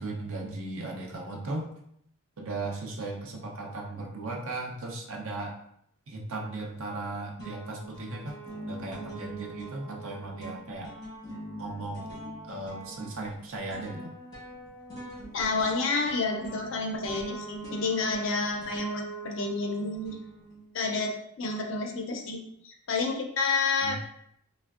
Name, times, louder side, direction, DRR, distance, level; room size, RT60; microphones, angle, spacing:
voice 1, 0.0-1.7 2.4-5.5 6.1-10.9 11.6-12.1 12.5-14.1 23.8-24.0, right 2 dB, 75° right, 0 dB, 0.6 m, -37 dB
sound 1, 6.6-7.1 7.4-20.8, right 2 dB, 20° left, 0.9 m, -43 dB
voice 2, 15.3-20.2 20.7-24.0, left 3 dB, 60° left, 2 dB, 0.4 m, -30 dB
3.3 x 2.1 x 2.3 m, 0.72 s
head